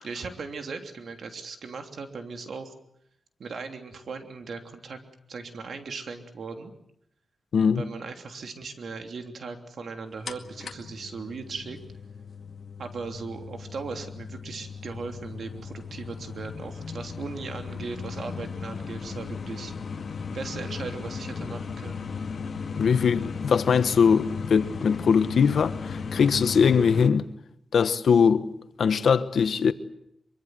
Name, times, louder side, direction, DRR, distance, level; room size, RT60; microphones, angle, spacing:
voice 1, 0.0-2.7 3.4-5.0 5.3-6.7 7.7-11.8 12.8-19.7 20.3-22.0, right 4 dB, 75° right, 3.1 m, -38 dB
sound 1, 10.3-27.1, left 5 dB, 60° left, 2.0 m, -36 dB
voice 2, 22.8-27.3 27.7-28.5 28.8-29.7, left 6 dB, 80° left, 1.3 m, -21 dB
24.5 x 24.0 x 7.8 m
wide cardioid pair, 95°, 0 cm